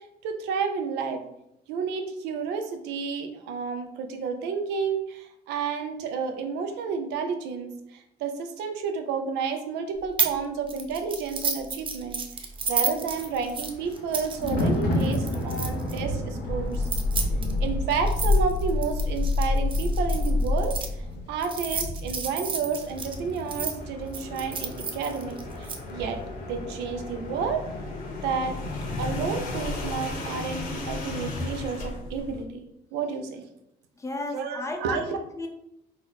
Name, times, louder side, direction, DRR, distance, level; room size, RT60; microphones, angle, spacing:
voice 1, 0.2-1.2 1.7-16.9 17.6-20.7 21.3-26.2 26.5-27.6 28.2-28.6 29.0-32.7 32.9-33.4 34.3-35.2, right 5 dB, 85° right, 6 dB, 0.5 m, -31 dB
sound 1, 10.2-10.4 10.7-16.0 16.7-20.9 21.4-23.7 24.1-25.8, right 6 dB, 30° right, 0.4 m, -31 dB
Thunder, 12.6-27.2 27.5-27.8, left 1 dB, 85° left, 0.8 m, -34 dB
sound 2, 16.4-21.1 22.5-32.4, left 3 dB, 55° left, 0.9 m, -30 dB
voice 2, 34.0-35.5, left 2 dB, 15° left, 3 dB, 0.5 m, -34 dB
2.9 x 2.0 x 4.0 m, 0.81 s
cardioid pair, 110°, 17 cm